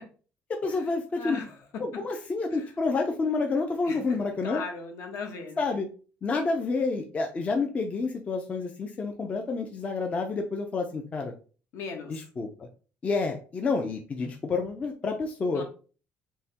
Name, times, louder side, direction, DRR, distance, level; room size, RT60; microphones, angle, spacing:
voice 1, 0.5-1.4 1.8-4.6 5.6-5.9 6.2-11.3 12.1-12.7 13.0-15.6, left 4 dB, 25° left, 3 dB, 0.4 m, -29 dB
voice 2, 1.1-2.0 2.5-2.7 3.9-4.2 4.4-5.7 11.7-12.2 15.5-15.6, left 4 dB, 65° left, 4 dB, 1.0 m, -38 dB
5.4 x 2.1 x 2.8 m, 0.38 s
cardioid pair, 155°, 5 cm